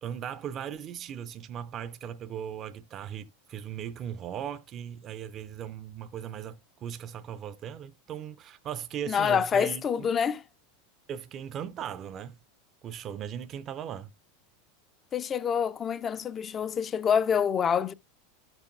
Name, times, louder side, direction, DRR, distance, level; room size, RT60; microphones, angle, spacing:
voice 1, 0.0-10.1 11.1-12.4 12.8-14.1, right 9 dB, 40° right, 0.5 m, -38 dB
voice 2, 9.1-10.4 15.1-17.9, left 7 dB, 30° left, 0.5 m, -26 dB
13.0 x 6.1 x 2.3 m
hypercardioid pair, 90°, 0 cm